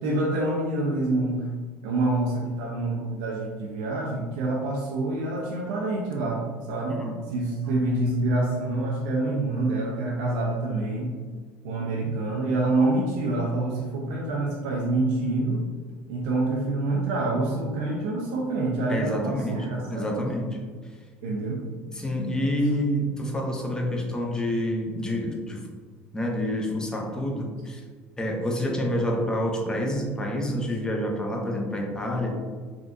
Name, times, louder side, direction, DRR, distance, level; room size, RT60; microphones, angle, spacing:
voice 1, 0.0-1.5 1.8-7.0 7.3-11.2 11.6-15.6 16.1-20.3 21.2-21.7, right 2 dB, 80° right, -3 dB, 0.5 m, -26 dB
voice 2, 6.9-7.2 18.9-19.6 19.8-20.5 21.9-25.7 26.1-27.8 28.2-32.3, equal, 15° left, 1 dB, 0.6 m, -28 dB
3.6 x 2.4 x 2.5 m, 1.5 s
supercardioid pair, 100°, 6 cm